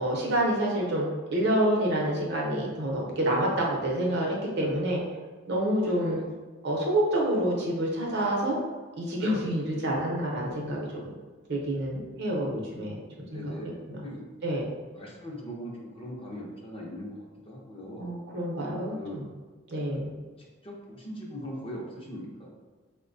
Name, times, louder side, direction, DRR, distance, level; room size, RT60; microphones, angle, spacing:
voice 1, 0.0-5.0 5.5-6.2 6.6-8.6 9.0-11.1 11.5-13.0 13.3-14.0 14.4-14.6 18.0-19.2 19.7-20.1, right 1 dB, 55° right, -2 dB, 0.7 m, -28 dB
voice 2, 5.9-6.3 13.2-14.2 14.9-18.1 18.9-19.2 19.9-20.0 20.4-22.5, equal, 25° left, -2 dB, 0.6 m, -41 dB
4.4 x 2.2 x 2.5 m, 1.4 s
head